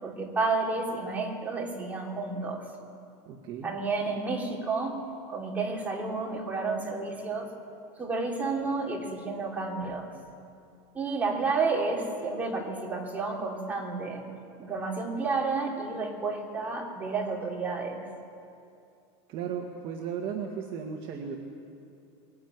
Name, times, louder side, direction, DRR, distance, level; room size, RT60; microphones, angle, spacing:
voice 1, 0.0-2.7 3.6-7.5 8.0-10.1 10.9-14.3 14.6-18.1, right 3 dB, 10° right, -2 dB, 3.1 m, -31 dB
voice 2, 3.3-3.7 19.3-21.4, right 7 dB, 35° right, 1 dB, 1.7 m, -35 dB
22.5 x 19.0 x 9.3 m, 2.6 s
supercardioid pair, 175°, 15 cm